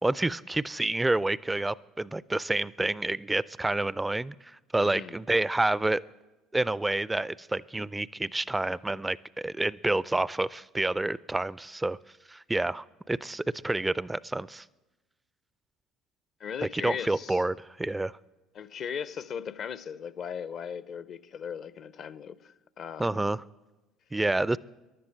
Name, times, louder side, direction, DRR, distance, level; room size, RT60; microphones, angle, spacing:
voice 1, 0.0-4.3 4.7-6.0 6.5-12.0 12.3-14.6 16.6-18.1 23.0-23.4 24.1-24.6, right 2 dB, 15° right, 0.4 m, -28 dB
voice 2, 4.8-5.2 16.4-17.4 18.5-23.2, left 7 dB, 50° left, 0.6 m, -38 dB
14.5 x 11.0 x 7.8 m
hypercardioid pair, 60°, 0 cm